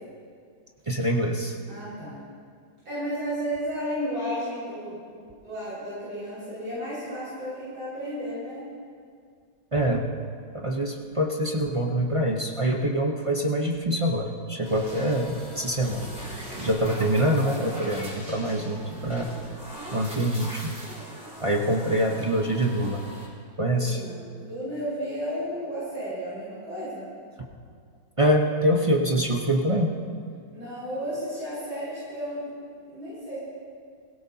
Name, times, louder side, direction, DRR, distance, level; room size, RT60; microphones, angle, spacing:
voice 1, 0.9-1.5 9.7-10.1 10.6-19.3 19.9-20.7 21.4-23.0 23.6-24.0 28.2-29.9, right 1 dB, 30° right, 0 dB, 0.6 m, -25 dB
voice 2, 1.7-2.2 2.8-5.2 5.4-8.6 23.7-27.1 30.5-32.5 32.9-33.4, equal, 80° right, -11 dB, 5.9 m, -33 dB
sound 1, 14.6-23.3, equal, 5° right, 3.5 m, -40 dB
21.5 x 17.0 x 2.9 m, 2.1 s
omnidirectional pair, 2.1 m